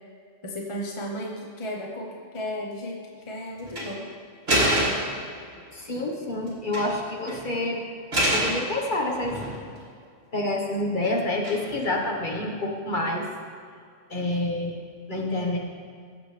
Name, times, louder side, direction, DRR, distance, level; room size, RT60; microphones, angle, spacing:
voice 1, 0.4-2.1 2.3-3.0 3.3-4.1, equal, 25° left, -1 dB, 1.0 m, -34 dB
sound 1, 3.6-3.9 4.5-5.2 6.5-7.0 7.3-7.4 8.1-8.6 9.1-9.8 11.4-11.9, right 1 dB, 55° right, 2.7 m, -25 dB
voice 2, 5.7-7.9 8.3-9.5 10.3-13.3 14.1-14.8 15.1-15.6, left 1 dB, 40° left, 0 dB, 1.4 m, -28 dB
16.5 x 7.4 x 3.3 m, 2.2 s
omnidirectional pair, 1.3 m